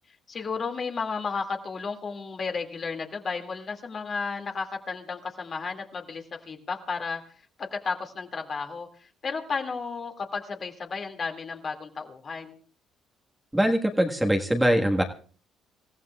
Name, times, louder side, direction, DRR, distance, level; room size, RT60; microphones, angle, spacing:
voice 1, 0.3-7.2 7.6-12.6, left 5 dB, 45° left, 4 dB, 2.3 m, -33 dB
voice 2, 13.5-15.0, equal, 10° right, 3 dB, 1.6 m, -22 dB
26.5 x 14.5 x 2.4 m, 0.41 s
supercardioid pair, 65°, 0 cm